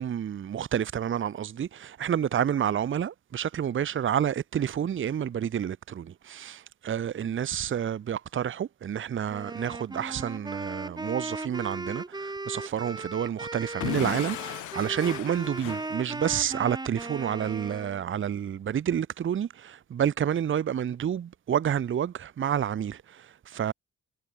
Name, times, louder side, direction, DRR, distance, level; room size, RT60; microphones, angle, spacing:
voice 1, 0.0-23.0 23.5-23.7, right 9 dB, 40° right, 0.8 m, -29 dB
Wind instrument woodwind instrument, 9.3-18.1, right 2 dB, 15° right, 1.4 m, -37 dB
Explosion / Shatter, 13.8-16.6, left 17 dB, 85° left, 0.9 m, -36 dB
cardioid pair, 90°, 30 cm